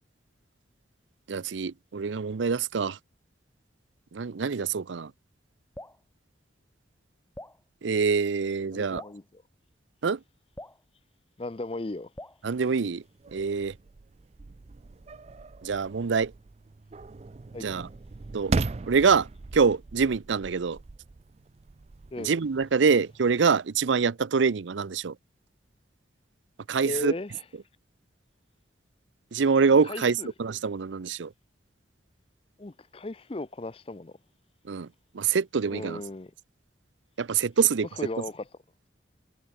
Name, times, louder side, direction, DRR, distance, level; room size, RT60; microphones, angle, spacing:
voice 1, 1.3-3.0 4.1-5.1 7.8-9.0 10.0-10.2 12.4-13.0 13.3-13.7 15.6-16.3 17.6-17.9 18.3-18.5 18.8-20.8 22.2-25.2 26.7-27.1 29.3-31.3 34.6-34.9 35.1-36.0 37.2-37.9, right 5 dB, 85° right, 0.6 m, -25 dB
Drip, 5.7-6.0 7.3-7.6 8.9-9.2 10.5-10.8 12.2-12.4, left 1 dB, 10° left, 1.5 m, -43 dB
voice 2, 8.7-9.2 11.4-12.1 17.5-17.7 22.1-22.3 26.8-27.3 29.8-30.3 32.6-34.1 35.7-36.3 38.0-38.4, left 2 dB, 30° left, 0.6 m, -36 dB
sound 1, 12.5-23.4, right 3 dB, 35° right, 0.4 m, -38 dB
head